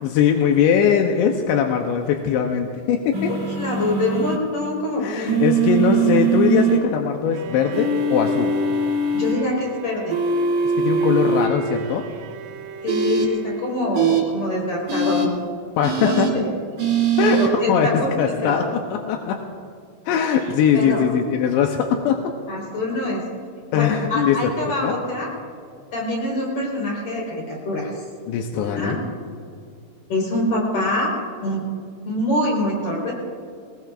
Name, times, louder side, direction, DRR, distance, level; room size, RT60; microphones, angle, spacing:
voice 1, 0.0-3.3 5.0-8.5 10.7-12.0 15.8-16.3 17.2-18.6 18.9-19.4 20.1-22.2 23.7-24.5 24.8-24.9 28.3-29.0, left 7 dB, 80° left, 3 dB, 2.7 m, -21 dB
sound 1, 3.1-4.4 5.3-6.8 7.7-9.3 10.1-11.5 12.9-13.2 13.9-14.2 14.9-15.2 15.8-16.3 16.8-17.5, right 5 dB, 35° right, 3.4 m, -21 dB
voice 2, 3.6-5.4 5.7-5.9 9.1-10.2 12.8-15.3 16.0-16.5 17.2-18.7 20.7-21.0 22.5-23.2 23.7-25.3 25.9-27.9 28.5-29.0 30.1-31.6 32.0-33.1, left 1 dB, 35° left, -3 dB, 5.5 m, -25 dB
Bowed string instrument, 7.3-14.1, right 7 dB, 90° right, 3.3 m, -36 dB
23.5 x 20.0 x 2.5 m, 2.2 s
omnidirectional pair, 5.9 m